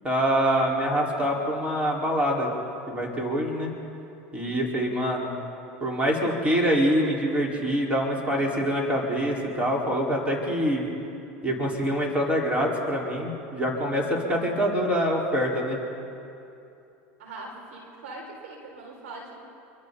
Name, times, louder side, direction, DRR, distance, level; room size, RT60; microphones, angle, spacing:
voice 1, 0.0-2.5 2.9-3.7 4.3-5.3 5.8-10.9 11.4-15.8, equal, 20° right, -3 dB, 4.8 m, -25 dB
voice 2, 17.2-19.4, right 2 dB, 85° right, -1 dB, 6.1 m, -41 dB
27.0 x 24.5 x 4.2 m, 2.7 s
supercardioid pair, 100°, 7 cm